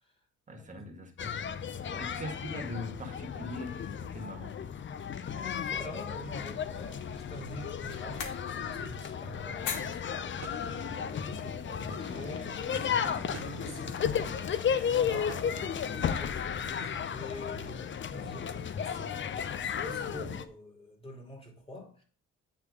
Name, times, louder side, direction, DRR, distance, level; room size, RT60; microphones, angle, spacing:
voice 1, 0.5-1.3 2.0-4.6 12.9-13.3, left 1 dB, 25° right, 1.7 m, -41 dB
sound 1, 1.2-20.5, left 7 dB, 40° left, 0.5 m, -34 dB
voice 2, 5.3-13.0 13.3-22.0, equal, 20° left, 2.6 m, -46 dB
sound 2, 6.3-11.7, left 6 dB, 80° left, 1.2 m, -44 dB
sound 3, 10.2-16.4, right 10 dB, 55° right, 0.6 m, -51 dB
8.4 x 3.2 x 4.8 m
cardioid pair, 90°, 30 cm